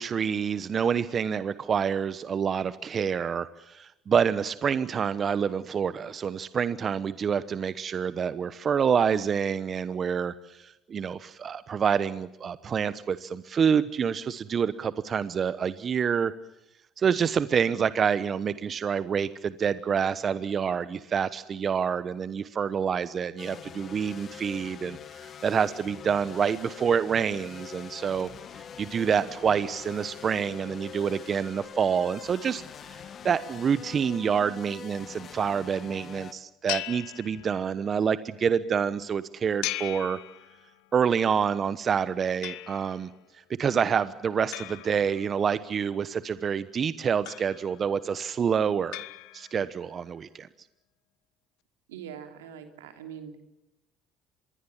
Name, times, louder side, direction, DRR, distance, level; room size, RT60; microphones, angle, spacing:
voice 1, 0.0-16.3 17.0-32.6 32.9-40.2 40.9-43.1 43.6-49.0 49.3-50.5, right 7 dB, 45° right, 15 dB, 1.0 m, -27 dB
sound 1, 23.4-36.3, left 8 dB, 50° left, 1.8 m, -44 dB
sound 2, 36.7-37.9 39.6-40.9 42.4-43.1 44.5-45.7 47.3-48.0 48.9-49.8, left 17 dB, 75° left, 1.2 m, -38 dB
voice 2, 51.9-53.4, right 8 dB, 90° right, 6 dB, 3.0 m, -42 dB
26.0 x 21.5 x 7.3 m, 0.90 s
hypercardioid pair, 65°, 0 cm